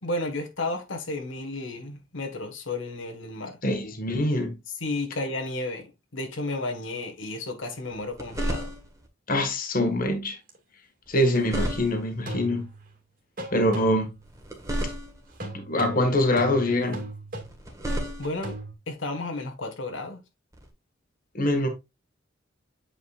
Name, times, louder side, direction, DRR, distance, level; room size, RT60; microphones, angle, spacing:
voice 1, 0.0-3.6 4.8-8.7 18.2-18.6 18.9-20.2, left 2 dB, 80° left, 1.5 m, -32 dB
voice 2, 3.6-4.6 9.3-10.4 11.1-12.7 13.5-14.1 15.4-17.1 21.3-21.7, left 1 dB, 45° left, 1.6 m, -24 dB
sound 1, 7.9-9.1 11.1-12.2 14.2-15.4 17.4-18.5 20.5-20.7, right 1 dB, 15° right, 1.5 m, -33 dB
sound 2, 10.5-10.6 12.3-13.0 13.4-14.3 15.4-18.7, right 1 dB, 45° right, 2.2 m, -38 dB
8.5 x 5.2 x 2.4 m
head